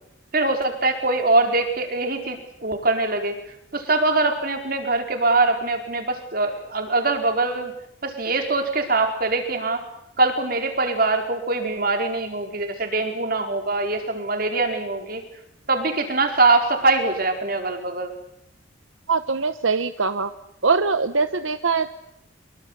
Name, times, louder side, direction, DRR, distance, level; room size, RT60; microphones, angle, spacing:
voice 1, 0.3-3.3 3.7-7.7 8.0-9.8 10.2-15.2 15.7-18.1, right 3 dB, 50° right, 5 dB, 4.7 m, -23 dB
voice 2, 19.1-20.3 20.6-21.9, right 4 dB, 80° right, 11 dB, 1.0 m, -22 dB
25.5 x 23.5 x 8.2 m, 0.76 s
head